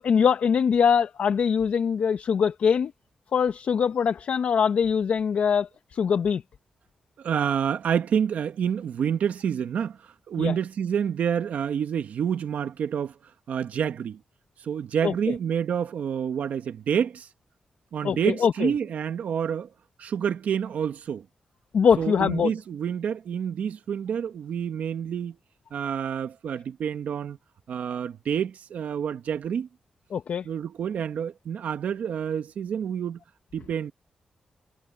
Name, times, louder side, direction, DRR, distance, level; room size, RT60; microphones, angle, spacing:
voice 1, 0.0-2.9 3.3-6.4 10.4-10.5 15.0-15.3 18.0-18.7 21.7-22.5 30.1-30.5, left 7 dB, 75° left, 1.4 m, -23 dB
voice 2, 7.2-13.1 13.5-14.2 14.6-17.3 17.9-19.7 20.0-21.2 22.0-25.3 25.7-27.4 27.7-29.7 30.4-33.2 33.5-33.9, right 8 dB, 80° right, 1.6 m, -28 dB
supercardioid pair, 50°, 3 cm